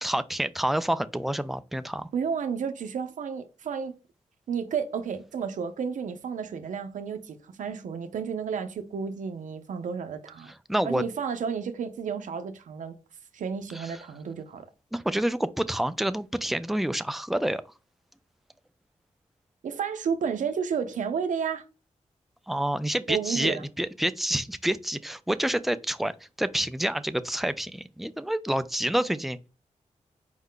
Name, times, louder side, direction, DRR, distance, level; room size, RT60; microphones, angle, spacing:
voice 1, 0.0-2.1 10.7-11.0 13.7-14.0 14.9-17.6 22.5-26.1 26.4-29.4, right 1 dB, ahead, 0.3 m, -28 dB
voice 2, 2.1-4.0 4.5-10.5 10.8-12.9 13.3-14.6 19.6-21.6 23.1-23.6, right 6 dB, 80° right, 0.5 m, -31 dB
4.7 x 2.1 x 3.7 m
cardioid pair, 65°, 13 cm